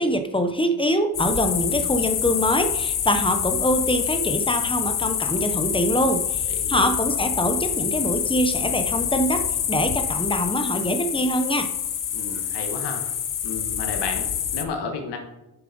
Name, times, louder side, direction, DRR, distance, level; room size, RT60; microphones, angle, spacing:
voice 1, 0.0-11.7, equal, 15° left, 7 dB, 0.9 m, -24 dB
sound 1, 1.1-14.6, left 9 dB, 50° left, 0.9 m, -26 dB
voice 2, 6.5-6.9 12.1-13.1 13.4-15.2, left 4 dB, 90° left, 4 dB, 1.8 m, -32 dB
7.4 x 7.1 x 5.4 m, 0.94 s
cardioid pair, 105°, 40 cm